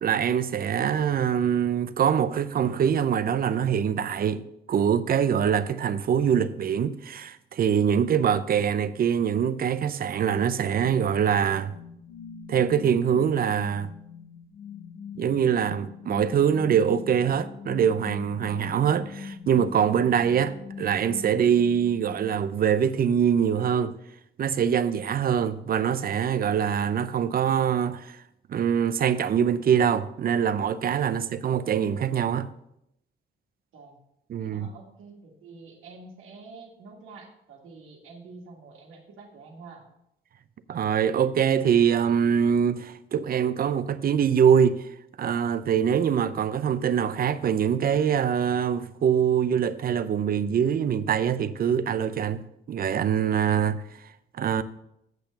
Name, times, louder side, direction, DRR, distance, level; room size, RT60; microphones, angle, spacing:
voice 1, 0.0-4.4 4.7-11.7 12.5-13.9 15.2-24.0 24.4-28.2 28.5-32.5 34.3-34.7 40.7-44.8 45.2-53.8 54.4-54.6, right 8 dB, 50° right, 0.6 m, -24 dB
sound 1, 10.8-22.8, left 6 dB, 75° left, 1.2 m, -42 dB
voice 2, 34.5-39.9, right 3 dB, 90° right, 2.0 m, -47 dB
8.2 x 6.6 x 5.2 m
cardioid pair, 90°, 20 cm